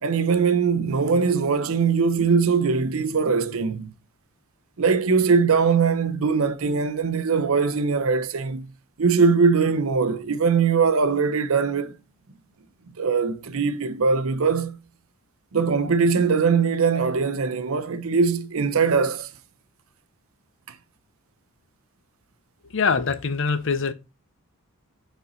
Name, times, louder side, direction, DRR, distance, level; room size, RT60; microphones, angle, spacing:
voice 1, 0.0-3.9 4.8-8.7 9.0-12.0 13.0-14.8 15.5-19.3, right 5 dB, 70° right, 0.6 m, -21 dB
voice 2, 22.7-23.9, left 5 dB, 55° left, 0.7 m, -23 dB
6.7 x 4.4 x 3.9 m
head